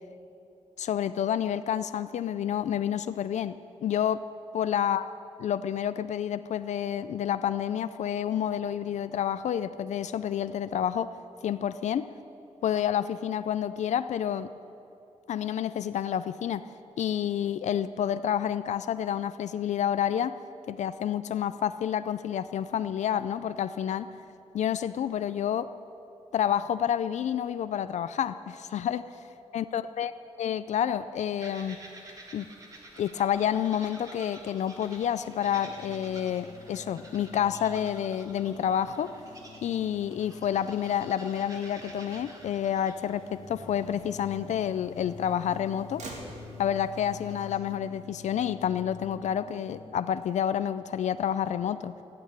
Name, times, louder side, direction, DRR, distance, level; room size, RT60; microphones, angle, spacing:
voice 1, 0.8-4.3 4.5-5.1 5.4-11.1 11.4-12.1 12.6-14.5 15.3-16.7 17.0-20.4 20.7-24.1 24.5-25.7 26.3-29.1 29.5-30.1 30.4-31.8 32.3-32.5 33.0-39.1 39.6-46.0 46.6-51.9, left 9 dB, 80° left, 12 dB, 0.4 m, -29 dB
sound 1, 31.4-47.6, right 1 dB, 30° right, 2.0 m, -51 dB
Motor vehicle (road), 33.2-49.0, right 2 dB, 80° right, 2.3 m, -54 dB
sound 2, 35.4-50.0, left 5 dB, 55° left, 1.0 m, -48 dB
15.5 x 8.8 x 9.5 m, 2.8 s
wide cardioid pair, 175°, 12 cm